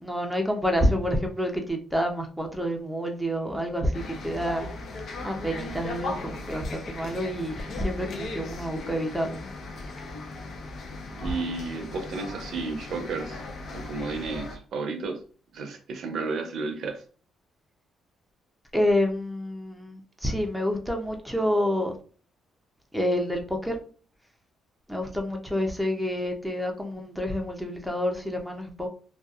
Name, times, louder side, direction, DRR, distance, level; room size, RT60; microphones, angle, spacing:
voice 1, 0.0-4.7 5.2-9.5 18.7-21.9 22.9-23.7 24.9-28.9, equal, ahead, 2 dB, 0.6 m, -28 dB
sound 1, 3.9-14.6, left 3 dB, 65° left, 0.5 m, -38 dB
voice 2, 11.1-13.4 13.7-15.2 15.5-17.0, right 4 dB, 70° right, 5 dB, 0.5 m, -32 dB
2.6 x 2.3 x 2.4 m, 0.40 s
cardioid pair, 90°, 0 cm